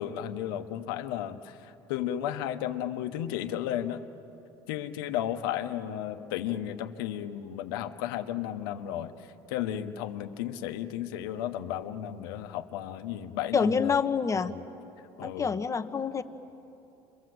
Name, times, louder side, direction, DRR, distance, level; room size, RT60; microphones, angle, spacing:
voice 1, 0.0-4.0 4.7-9.1 9.5-13.9 15.2-15.6, left 11 dB, 90° left, 8 dB, 1.2 m, -34 dB
voice 2, 13.5-14.5 15.2-16.2, left 6 dB, 25° left, 9 dB, 1.2 m, -27 dB
28.5 x 23.5 x 7.9 m, 3.0 s
supercardioid pair, 95°, 11 cm